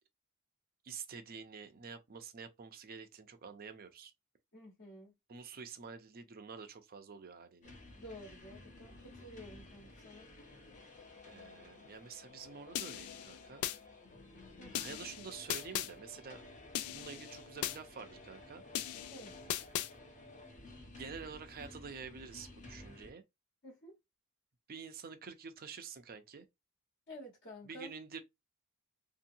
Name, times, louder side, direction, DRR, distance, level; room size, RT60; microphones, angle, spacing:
voice 1, 0.8-4.1 5.3-7.8 11.3-13.6 14.7-16.4 16.9-18.6 20.7-23.2 24.7-26.5 27.7-28.2, right 5 dB, 45° right, 0.5 m, -48 dB
voice 2, 4.5-5.1 8.0-10.3 14.6-15.0 19.1-19.3 23.6-23.9 27.1-27.9, equal, 55° left, 1.2 m, -51 dB
sound 1, 7.6-23.1, left 2 dB, 35° left, 0.8 m, -54 dB
sound 2, 12.8-13.8 14.7-15.9 16.7-17.8 18.7-19.9, left 12 dB, 75° left, 0.3 m, -38 dB
2.8 x 2.7 x 2.6 m
head